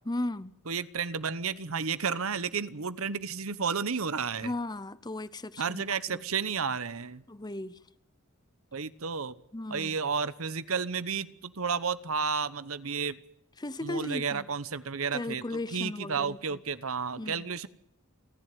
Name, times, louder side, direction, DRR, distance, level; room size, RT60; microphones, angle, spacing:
voice 1, 0.1-0.6 4.4-6.2 7.3-7.8 9.5-9.9 13.6-14.4 15.1-16.6 17.2-17.4, left 2 dB, 20° left, 0.8 m, -36 dB
voice 2, 0.7-4.5 5.6-7.2 8.7-9.3 9.7-13.2 13.8-15.4 15.7-17.7, right 5 dB, 75° right, 1.1 m, -32 dB
29.0 x 11.0 x 9.2 m
head